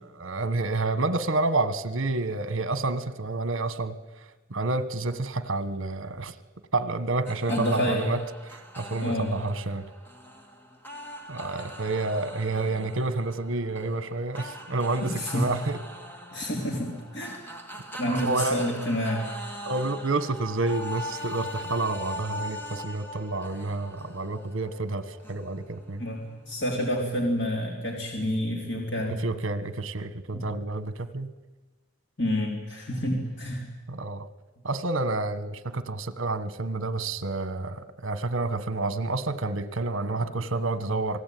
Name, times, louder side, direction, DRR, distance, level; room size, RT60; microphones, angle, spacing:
voice 1, 0.1-6.3 6.7-8.2 8.5-9.9 11.3-15.8 18.1-18.7 19.6-26.0 29.2-31.3 33.9-34.3 34.6-41.2, right 2 dB, 65° right, 14 dB, 1.4 m, -29 dB
sound 1, 7.2-26.8, equal, 10° left, 2.3 m, -41 dB
voice 2, 7.5-8.0 9.0-9.3 15.0-15.5 16.3-17.4 18.0-19.3 26.0-29.2 30.3-30.4 32.2-33.6, equal, 55° left, 0 dB, 3.7 m, -28 dB
27.5 x 19.0 x 9.4 m, 1.2 s
head